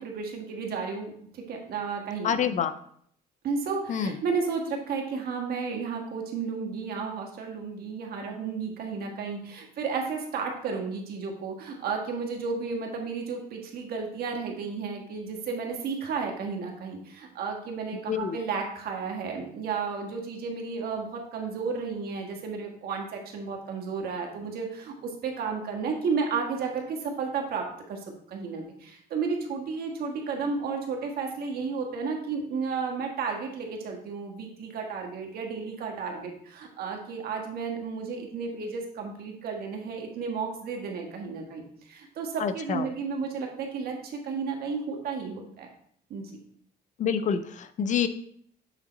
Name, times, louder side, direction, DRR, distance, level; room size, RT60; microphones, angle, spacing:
voice 1, 0.0-2.3 3.4-28.0 28.3-45.7 46.1-46.3, right 5 dB, 65° right, 2 dB, 1.5 m, -33 dB
voice 2, 2.2-2.7 3.9-4.1 18.1-18.4 42.4-42.9 47.0-48.1, left 7 dB, 45° left, 12 dB, 0.5 m, -27 dB
8.1 x 3.6 x 4.0 m, 0.64 s
cardioid pair, 110°, 17 cm